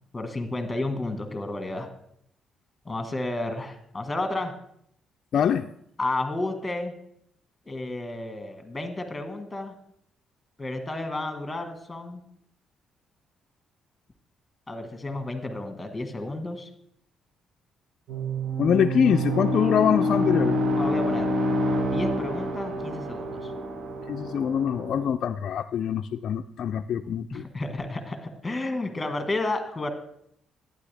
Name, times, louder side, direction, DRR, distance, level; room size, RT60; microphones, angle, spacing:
voice 1, 0.1-1.9 2.8-4.5 6.0-6.9 7.6-9.7 10.6-12.2 14.7-16.7 20.8-21.3 21.8-23.5 27.3-29.9, left 2 dB, 15° left, 7 dB, 1.5 m, -31 dB
voice 2, 5.3-5.7 18.6-20.6 24.1-27.5, left 8 dB, 65° left, 5 dB, 0.3 m, -24 dB
sound 1, 18.1-25.1, equal, 55° right, 1.5 m, -27 dB
11.5 x 9.4 x 3.4 m, 0.71 s
cardioid pair, 90°, 0 cm